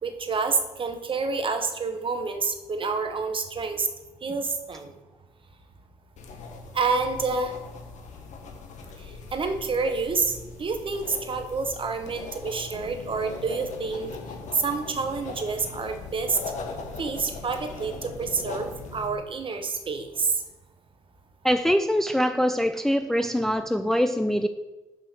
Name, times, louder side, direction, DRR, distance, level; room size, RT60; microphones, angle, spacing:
voice 1, 0.0-3.9 4.2-4.9 6.7-7.5 9.3-14.1 14.5-16.4 17.0-20.3, right 4 dB, 40° right, 7 dB, 1.0 m, -28 dB
sound 1, 6.2-19.1, left 4 dB, 60° left, 1.2 m, -40 dB
Engine, 12.7-19.2, left 2 dB, 85° left, 0.8 m, -45 dB
voice 2, 21.4-24.5, equal, 5° left, 9 dB, 0.4 m, -23 dB
5.6 x 5.0 x 6.0 m, 1.1 s
hypercardioid pair, 50°, 14 cm